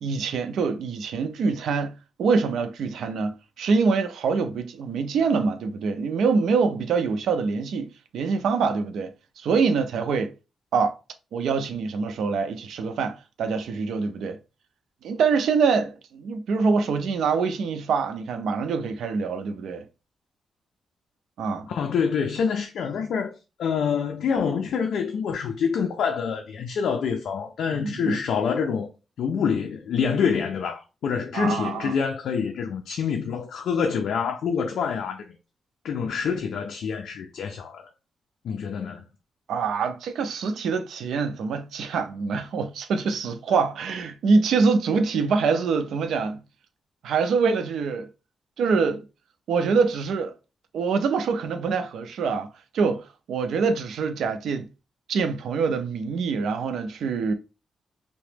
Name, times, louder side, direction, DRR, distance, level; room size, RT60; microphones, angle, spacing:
voice 1, 0.0-9.1 9.4-10.3 10.7-10.9 11.3-14.4 15.0-19.8 21.4-21.7 27.7-28.2 31.3-31.9 39.5-46.4 47.0-48.1 48.6-49.0 49.5-50.3 50.7-52.5 52.7-54.7 55.1-57.3, right 5 dB, 85° right, 0.4 m, -25 dB
voice 2, 21.7-28.9 29.2-35.4 35.8-37.9 38.4-39.0, left 6 dB, 75° left, 0.3 m, -26 dB
2.9 x 2.1 x 3.2 m
wide cardioid pair, 170°, 0 cm